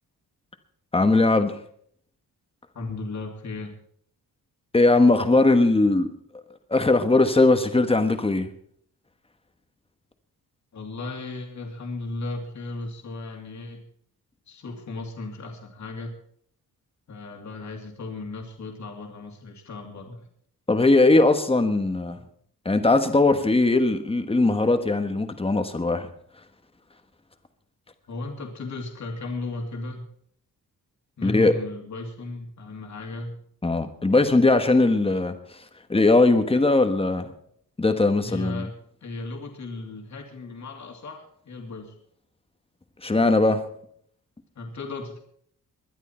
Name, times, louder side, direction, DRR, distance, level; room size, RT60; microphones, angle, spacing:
voice 1, 0.9-1.6 4.7-6.1 6.7-8.5 20.7-22.2 22.6-26.1 31.2-31.5 33.6-37.3 37.8-38.7 43.0-43.6, left 2 dB, 15° left, 1.4 m, -20 dB
voice 2, 2.7-3.7 10.7-13.8 14.5-16.2 17.1-20.3 28.1-30.1 31.2-33.4 38.2-38.7 39.0-42.0 44.6-45.2, left 2 dB, 50° left, 2.6 m, -35 dB
21.0 x 11.5 x 4.4 m
wide cardioid pair, 135°, 36 cm